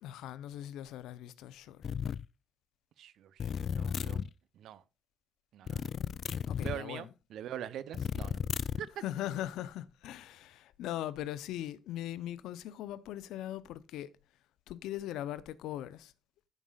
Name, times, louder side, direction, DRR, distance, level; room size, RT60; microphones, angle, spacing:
voice 1, 0.0-1.8 6.5-7.1 9.0-14.1 14.7-16.1, left 12 dB, 90° left, 0.6 m, -40 dB
sound 1, 1.8-2.3 3.4-4.3 5.7-6.8 7.9-8.9, left 7 dB, 55° left, 0.3 m, -34 dB
voice 2, 3.0-4.2 4.5-4.8 5.5-5.9 6.6-8.4 8.8-9.0, right 10 dB, 75° right, 0.6 m, -43 dB
15.0 x 5.4 x 2.3 m
cardioid pair, 90°, 0 cm